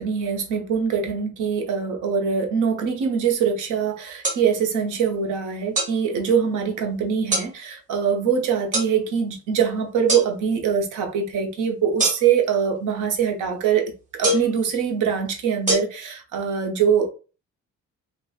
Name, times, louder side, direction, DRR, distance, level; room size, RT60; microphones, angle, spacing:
voice 1, 0.0-17.1, right 7 dB, 85° right, 0.7 m, -23 dB
sound 1, 4.2-4.4 5.8-5.9 7.3-7.5 8.7-8.9 10.1-10.3 12.0-12.4 14.2-14.5 15.7-15.8, right 1 dB, 25° right, 1.0 m, -22 dB
2.8 x 2.1 x 2.3 m
cardioid pair, 90°, 30 cm